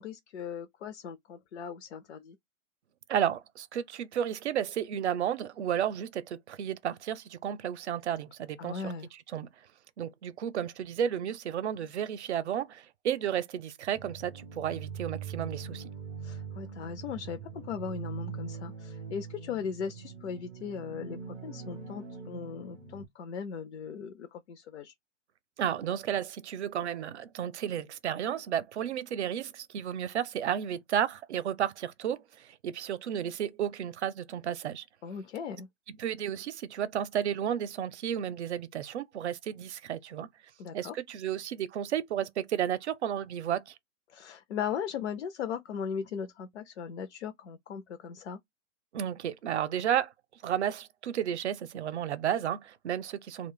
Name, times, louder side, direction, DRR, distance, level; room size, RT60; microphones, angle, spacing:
voice 1, 0.0-2.4 8.6-9.1 16.2-24.9 35.0-35.7 40.6-41.0 44.1-48.4, left 7 dB, 60° left, 0.5 m, -38 dB
voice 2, 3.1-8.9 9.3-9.5 10.0-15.8 25.6-34.8 36.0-40.3 40.7-43.7 48.9-50.1 50.4-53.5, right 9 dB, 60° right, 0.6 m, -32 dB
sound 1, 13.9-23.0, right 6 dB, 15° right, 0.4 m, -42 dB
2.4 x 2.2 x 3.7 m
figure-of-eight pair, 115°, 39 cm